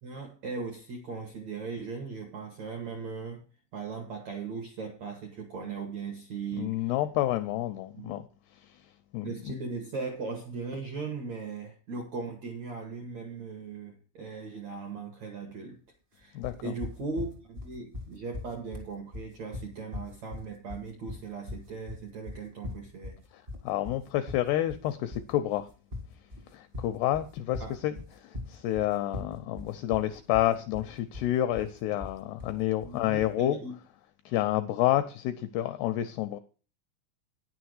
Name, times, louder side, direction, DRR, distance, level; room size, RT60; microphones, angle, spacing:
voice 1, 0.0-3.4 3.7-7.0 8.0-8.2 9.2-15.8 16.1-23.2 27.6-28.0 32.8-33.7, right 4 dB, 70° right, 1.7 m, -38 dB
voice 2, 6.6-8.2 9.1-9.6 16.3-16.7 23.3-25.7 26.5-33.6 34.3-36.4, left 13 dB, 85° left, 2.3 m, -29 dB
sound 1, 16.4-33.4, left 2 dB, 35° right, 0.8 m, -41 dB
9.9 x 6.9 x 6.4 m
omnidirectional pair, 5.4 m